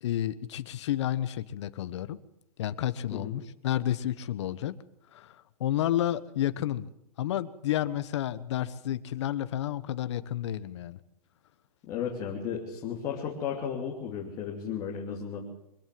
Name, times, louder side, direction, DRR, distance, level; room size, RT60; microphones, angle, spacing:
voice 1, 0.0-2.2 2.6-4.8 5.1-6.9 7.2-11.0, left 12 dB, 45° left, 13 dB, 1.2 m, -31 dB
voice 2, 11.9-15.5, left 7 dB, 20° left, -2 dB, 2.9 m, -34 dB
24.0 x 16.5 x 7.7 m, 0.80 s
hypercardioid pair, 170°, 20 cm